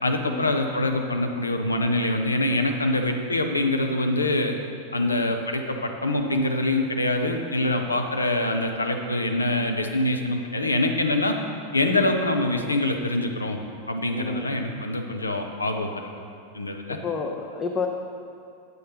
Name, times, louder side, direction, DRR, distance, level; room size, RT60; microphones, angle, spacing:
voice 1, 0.0-4.5 4.9-11.3 11.7-13.6 13.9-16.1 16.5-17.0, left 1 dB, 80° left, 4 dB, 0.7 m, -25 dB
voice 2, 5.0-5.4 11.9-12.1 14.1-14.5 16.9-17.9, left 4 dB, 25° left, 1 dB, 0.6 m, -30 dB
9.4 x 7.7 x 3.5 m, 2.4 s
figure-of-eight pair, 90°, 0 cm